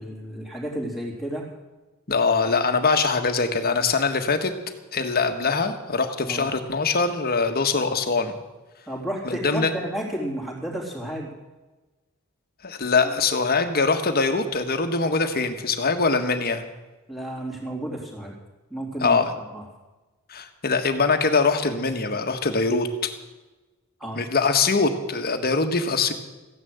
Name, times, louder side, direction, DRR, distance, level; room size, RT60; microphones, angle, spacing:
voice 1, 0.0-1.5 6.3-6.4 8.9-11.3 17.1-18.3 18.7-19.2 19.5-19.6 24.0-24.2, right 1 dB, ahead, -3 dB, 3.6 m, -32 dB
voice 2, 2.1-4.5 4.9-8.3 9.2-9.7 12.6-16.6 19.0-19.3 20.3-22.9 24.1-26.1, left 4 dB, 45° left, 7 dB, 1.6 m, -23 dB
15.5 x 10.5 x 8.0 m, 1.1 s
head